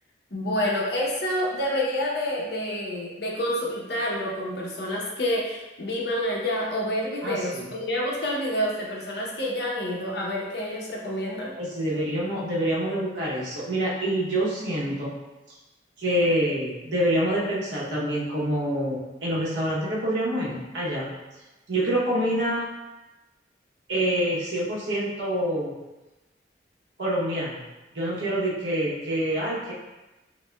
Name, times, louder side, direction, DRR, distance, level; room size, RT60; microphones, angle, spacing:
voice 1, 0.3-11.5, equal, 65° left, -3 dB, 0.8 m, -28 dB
voice 2, 7.2-7.7 11.6-15.1 15.5-15.6 16.0-21.1 21.7-22.7 23.9-25.7 27.0-27.6 27.9-29.7, right 1 dB, 80° right, -6 dB, 0.9 m, -26 dB
5.9 x 2.1 x 2.2 m, 1.1 s
head